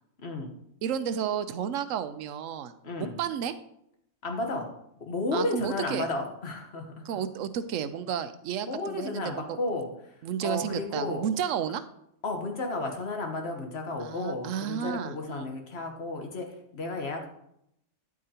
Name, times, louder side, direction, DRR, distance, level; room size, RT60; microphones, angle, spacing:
voice 1, 0.2-0.5 2.8-3.1 4.2-4.7 5.0-7.2 8.6-10.1 10.4-11.2 12.2-17.3, left 2 dB, 55° left, 3 dB, 1.4 m, -33 dB
voice 2, 0.8-2.7 3.0-3.5 5.3-6.1 7.0-9.6 10.2-11.8 14.0-15.5, right 8 dB, 85° right, 12 dB, 1.0 m, -32 dB
9.5 x 8.5 x 2.8 m, 0.77 s
omnidirectional pair, 1.3 m